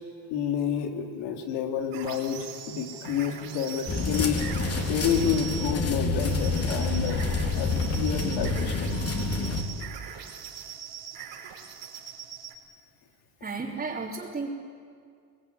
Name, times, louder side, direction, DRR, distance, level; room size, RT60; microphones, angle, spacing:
voice 1, 0.3-4.4 4.9-9.0, left 7 dB, 85° left, 3 dB, 3.1 m, -29 dB
sound 1, 1.9-5.8 6.2-12.5, right 9 dB, 80° right, 4.9 m, -41 dB
sound 2, 3.9-9.6, left 3 dB, 35° left, 3.5 m, -28 dB
voice 2, 13.4-14.5, right 4 dB, 25° right, -4 dB, 3.3 m, -33 dB
23.5 x 21.0 x 9.6 m, 2.2 s
cardioid pair, 105°, 40 cm